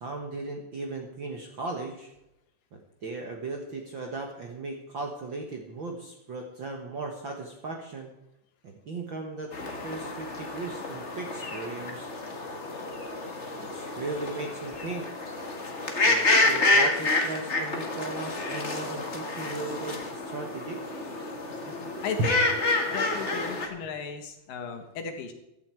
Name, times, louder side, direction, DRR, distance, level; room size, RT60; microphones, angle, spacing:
voice 1, 0.0-2.1 2.7-8.1 8.6-9.5 9.8-12.1 13.5-15.1 15.8-20.8, right 3 dB, 50° right, 2 dB, 1.5 m, -37 dB
sound 1, 9.5-23.7, left 2 dB, 30° left, 1.2 m, -29 dB
voice 2, 21.6-22.4 22.9-25.3, left 5 dB, 75° left, 6 dB, 3.2 m, -36 dB
15.5 x 12.5 x 4.5 m, 0.87 s
omnidirectional pair, 3.9 m